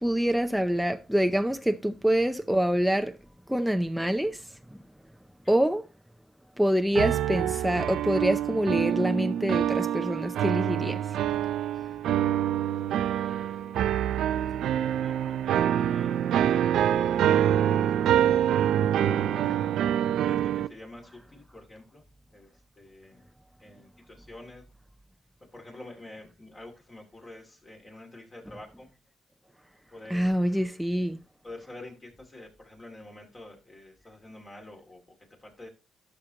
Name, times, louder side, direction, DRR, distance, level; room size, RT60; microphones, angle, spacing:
voice 1, 0.0-3.2 3.5-4.8 5.5-5.9 6.6-11.2 30.1-31.2, equal, ahead, 0.5 m, -26 dB
sound 1, 6.9-20.7, right 10 dB, 80° right, 0.5 m, -26 dB
voice 2, 13.0-14.3 15.0-18.3 19.3-19.8 20.2-22.0 22.3-22.5 22.8-23.2 23.6-24.6 25.4-28.9 29.9-30.5 31.4-35.0 35.4-35.7, left 2 dB, 30° left, 2.7 m, -48 dB
11.5 x 6.4 x 2.9 m
cardioid pair, 90°, 0 cm